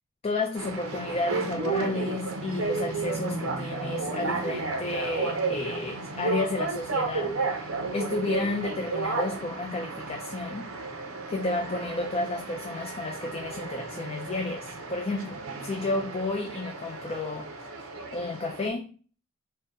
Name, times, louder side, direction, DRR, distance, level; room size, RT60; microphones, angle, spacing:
voice 1, 0.2-10.7 11.3-17.8 18.1-18.9, left 2 dB, 30° left, 0.4 m, -32 dB
sound 1, 0.6-18.7, right 3 dB, 75° right, 0.6 m, -33 dB
3.7 x 2.1 x 4.0 m
head